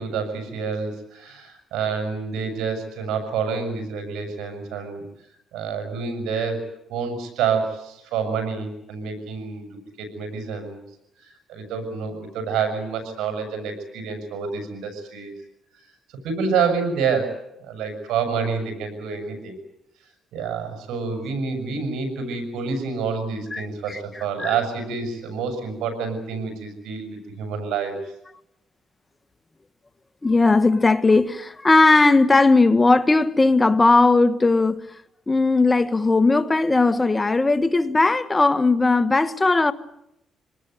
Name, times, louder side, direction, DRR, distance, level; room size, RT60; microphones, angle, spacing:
voice 1, 0.0-5.0 5.5-6.6 6.9-9.7 10.0-10.8 11.2-15.3 16.2-19.6 20.3-28.0, right 5 dB, 85° right, 6.9 m, -28 dB
voice 2, 23.5-24.5 30.2-34.8 35.3-39.7, left 3 dB, 20° left, 1.5 m, -18 dB
26.0 x 19.5 x 9.3 m
cardioid pair, 90°, 0 cm